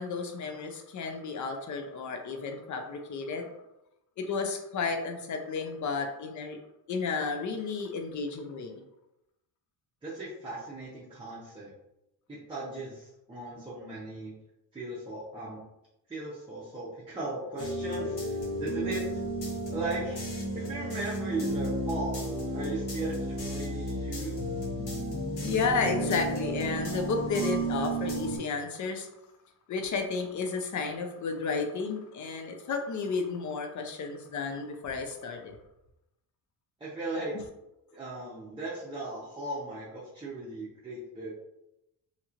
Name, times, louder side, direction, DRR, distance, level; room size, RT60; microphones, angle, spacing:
voice 1, 0.0-3.5 4.2-6.6 6.9-8.8 18.8-18.9 25.4-29.1 29.7-35.6, left 4 dB, 45° left, 5 dB, 0.5 m, -32 dB
voice 2, 10.0-11.7 12.3-14.3 14.7-15.6 16.1-19.2 19.7-20.2 20.5-24.4 36.8-37.3 37.9-41.4, right 2 dB, 10° right, -7 dB, 0.6 m, -37 dB
sound 1, 17.6-28.4, right 1 dB, 60° left, 1.1 m, -33 dB
2.9 x 2.9 x 2.4 m, 0.88 s
cardioid pair, 120°, 44 cm